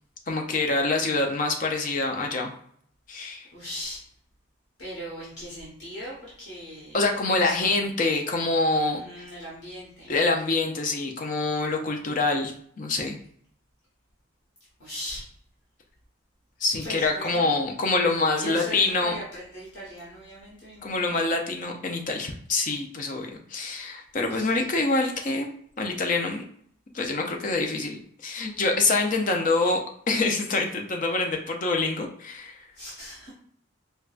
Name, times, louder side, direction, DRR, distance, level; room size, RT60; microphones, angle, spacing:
voice 1, 0.3-2.5 3.1-3.5 6.9-9.0 10.1-13.2 16.6-19.2 20.8-25.5 25.8-26.4 26.9-29.8 30.1-32.6, left 3 dB, 40° left, 2 dB, 0.5 m, -25 dB
voice 2, 3.5-4.0 4.8-7.8 8.9-10.2 14.8-15.2 16.8-17.5 18.4-21.2 24.3-24.6 32.7-33.3, equal, 60° left, -7 dB, 1.2 m, -39 dB
4.6 x 2.2 x 2.4 m, 0.62 s
head